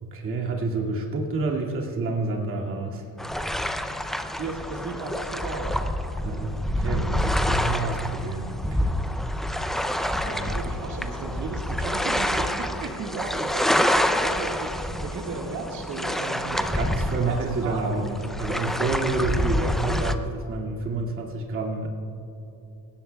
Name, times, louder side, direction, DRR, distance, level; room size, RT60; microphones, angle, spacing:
voice 1, 0.0-3.0 6.2-9.0 9.3-9.6 10.3-10.5 16.6-21.9, right 3 dB, 35° right, -1 dB, 2.2 m, -29 dB
sound 1, 3.2-20.1, left 1 dB, ahead, 0.3 m, -27 dB
voice 2, 4.4-5.8 10.2-13.7 13.9-16.8 17.1-18.0, right 4 dB, 55° right, -1 dB, 1.8 m, -35 dB
28.0 x 17.0 x 2.3 m, 2.9 s
cardioid pair, 160°, 37 cm